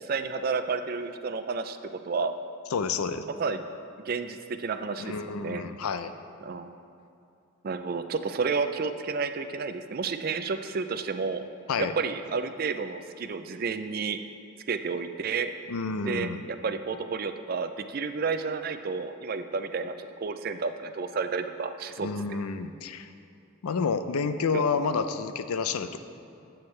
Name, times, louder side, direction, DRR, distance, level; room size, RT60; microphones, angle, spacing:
voice 1, 0.0-2.3 3.4-3.6 4.0-5.6 6.4-6.8 7.6-11.4 11.8-14.2 14.7-15.5 16.0-22.1 24.5-24.6, right 5 dB, 40° right, 10 dB, 0.4 m, -31 dB
voice 2, 2.7-3.3 5.0-6.1 11.7-11.9 15.7-16.5 22.0-23.1 23.6-26.0, left 5 dB, 85° left, 10 dB, 0.5 m, -29 dB
13.0 x 7.9 x 3.2 m, 2.6 s
head